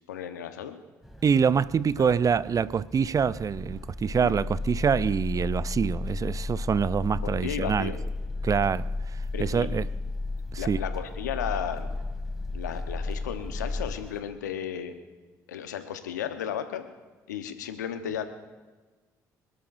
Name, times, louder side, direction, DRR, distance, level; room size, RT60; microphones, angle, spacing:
voice 1, 0.1-0.8 2.0-2.1 4.2-4.4 7.2-8.0 9.3-9.7 10.6-11.9 12.5-14.9 15.5-16.8 17.3-18.2, left 9 dB, 90° left, 1.1 m, -34 dB
sound 1, 1.0-14.2, equal, ahead, 2.5 m, -47 dB
voice 2, 1.2-7.9 8.4-8.9 9.4-9.9 10.5-10.8, right 6 dB, 40° right, 0.5 m, -25 dB
sound 2, 3.4-13.9, left 3 dB, 15° left, 1.3 m, -33 dB
26.5 x 12.5 x 2.7 m
hypercardioid pair, 50°, 9 cm